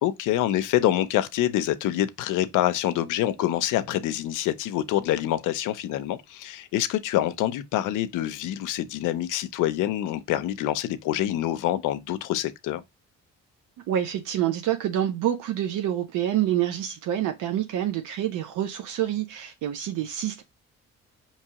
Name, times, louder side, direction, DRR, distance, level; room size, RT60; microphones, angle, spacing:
voice 1, 0.0-12.8, left 13 dB, 85° left, 0.5 m, -26 dB
voice 2, 13.9-20.4, right 11 dB, 85° right, 0.6 m, -27 dB
4.5 x 2.9 x 2.8 m
cardioid pair, 90°, 30 cm